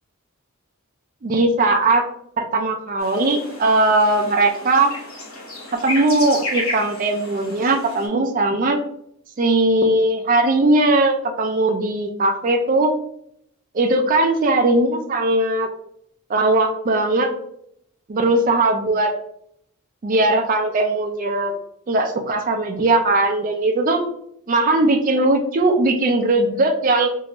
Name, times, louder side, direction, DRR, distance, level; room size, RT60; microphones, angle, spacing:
voice 1, 1.2-2.1 2.4-4.9 5.8-8.8 9.4-12.9 13.7-15.7 16.3-17.3 18.1-19.1 20.0-21.5 21.9-24.0 24.5-27.1, right 2 dB, 40° right, 4 dB, 0.4 m, -19 dB
sound 1, 3.0-8.1, left 2 dB, 70° left, 1.3 m, -32 dB
3.7 x 2.4 x 2.9 m, 0.71 s
head